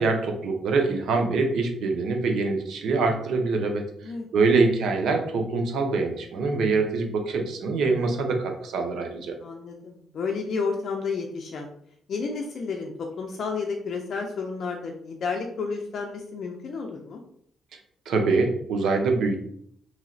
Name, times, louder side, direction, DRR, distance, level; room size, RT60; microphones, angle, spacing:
voice 1, 0.0-3.9 4.3-9.4 18.1-19.4, right 3 dB, 75° right, 3 dB, 0.7 m, -24 dB
voice 2, 9.3-11.7 12.1-17.2, left 4 dB, 60° left, 1 dB, 0.4 m, -31 dB
3.1 x 2.8 x 2.6 m, 0.66 s
cardioid pair, 90°, 0 cm